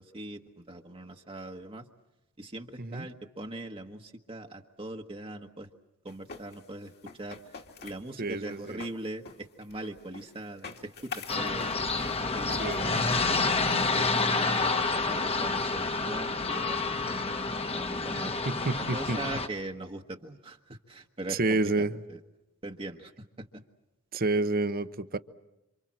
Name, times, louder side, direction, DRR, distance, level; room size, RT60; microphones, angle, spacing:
voice 1, 0.0-1.9 2.4-5.7 6.0-7.4 7.8-13.3 13.7-17.2 17.7-18.4 18.8-22.2 22.6-23.6, right 2 dB, 25° right, 1.3 m, -41 dB
sound 1, 6.1-14.2, left 5 dB, 50° left, 2.3 m, -46 dB
voice 2, 8.2-8.8 12.6-13.0 18.4-19.2 21.3-22.0 24.1-25.2, right 2 dB, 45° right, 1.0 m, -29 dB
sound 2, 11.3-19.5, left 3 dB, 30° left, 1.4 m, -29 dB
28.0 x 26.5 x 7.5 m
head